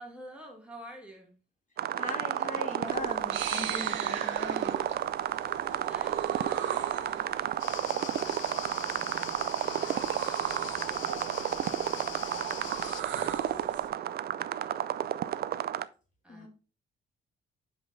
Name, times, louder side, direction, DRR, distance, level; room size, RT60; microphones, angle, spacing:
voice 1, 0.0-1.4 5.9-7.7 8.0-10.2 10.8-11.8 12.5-14.9 16.2-16.5, right 1 dB, 5° right, 1.9 m, -51 dB
voice 2, 1.7-4.9 5.7-5.8 16.3-16.5, left 2 dB, 40° left, 2.0 m, -40 dB
sound 1, 1.8-15.9, right 11 dB, 50° right, 0.4 m, -32 dB
sound 2, 2.9-13.9, right 7 dB, 75° right, 1.3 m, -40 dB
sound 3, 7.6-13.0, left 13 dB, 75° left, 0.4 m, -43 dB
5.9 x 5.3 x 4.0 m
cardioid pair, 90°, 20 cm